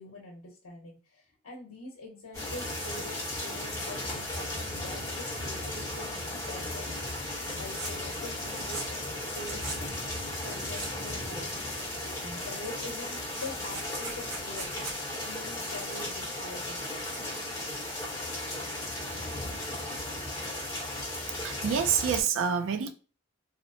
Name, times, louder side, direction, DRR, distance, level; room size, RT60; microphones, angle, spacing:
voice 1, 0.0-10.0 10.4-11.5 11.8-16.8, left 2 dB, 80° left, 0.7 m, -45 dB
sound 1, 2.3-22.2, left 1 dB, 15° left, 0.9 m, -36 dB
sound 2, 7.3-7.9 8.2-9.0 9.3-9.8 10.3-11.2 11.5-12.1 12.6-12.7 13.0-15.0, right 3 dB, 80° right, 0.8 m, -41 dB
voice 2, 21.4-22.9, right 7 dB, 60° right, 0.3 m, -27 dB
2.8 x 2.0 x 2.6 m
head